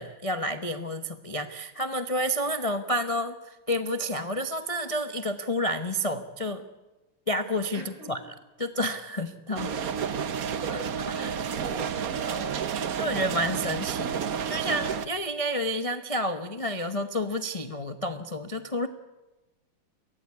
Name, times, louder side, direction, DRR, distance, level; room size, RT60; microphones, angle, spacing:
voice 1, 0.0-6.6 7.3-8.2 8.6-9.7 11.1-11.3 13.0-18.9, equal, 45° left, 9 dB, 0.4 m, -30 dB
voice 2, 7.7-8.1 9.6-9.8 10.6-10.8 11.1-12.6, right 3 dB, 70° right, 3 dB, 6.3 m, -39 dB
sound 1, 9.6-15.1, right 7 dB, 55° right, 1.1 m, -30 dB
23.5 x 17.5 x 8.3 m, 1.1 s
omnidirectional pair, 2.4 m